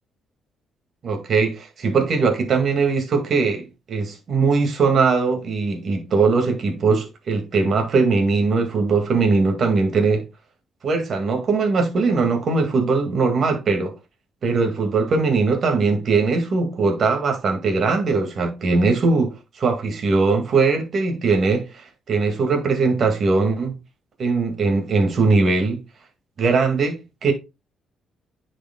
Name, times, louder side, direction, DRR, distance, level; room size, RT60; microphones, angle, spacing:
voice 1, 1.0-10.2 10.8-13.9 14.4-23.7 24.2-25.8 26.4-27.3, right 4 dB, 55° right, 1.9 m, -20 dB
10.0 x 5.1 x 2.2 m
cardioid pair, 90°, 0 cm